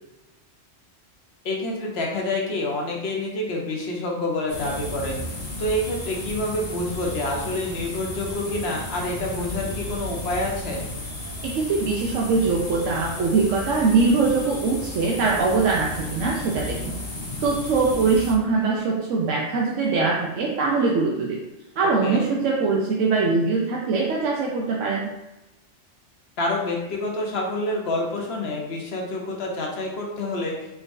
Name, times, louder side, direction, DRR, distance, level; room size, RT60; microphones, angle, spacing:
voice 1, 1.4-5.2 5.6-10.9 22.0-22.3 26.4-30.6, left 1 dB, 60° left, 0 dB, 1.0 m, -27 dB
sound 1, 4.5-18.3, left 1 dB, 30° left, 0.9 m, -34 dB
voice 2, 11.4-17.0 17.4-21.4 21.8-25.1, right 4 dB, 80° right, -3 dB, 1.0 m, -22 dB
3.8 x 3.5 x 2.6 m, 0.98 s
omnidirectional pair, 1.3 m